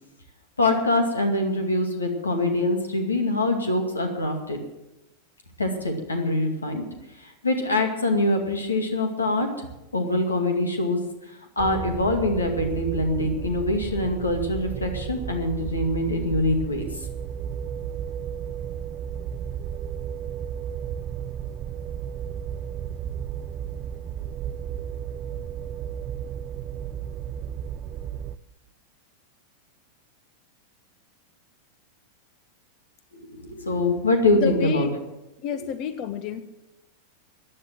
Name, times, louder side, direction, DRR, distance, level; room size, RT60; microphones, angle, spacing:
voice 1, 0.6-4.6 5.6-6.9 7.2-9.5 9.9-11.0 11.6-16.9 33.1-34.9, left 2 dB, 75° left, 4 dB, 2.2 m, -24 dB
sound 1, 11.6-28.4, right 8 dB, 35° right, 0.5 m, -33 dB
voice 2, 34.4-34.9 35.4-36.4, left 8 dB, 40° left, 12 dB, 1.1 m, -29 dB
15.5 x 9.9 x 7.7 m, 0.97 s
figure-of-eight pair, 90°, 0 cm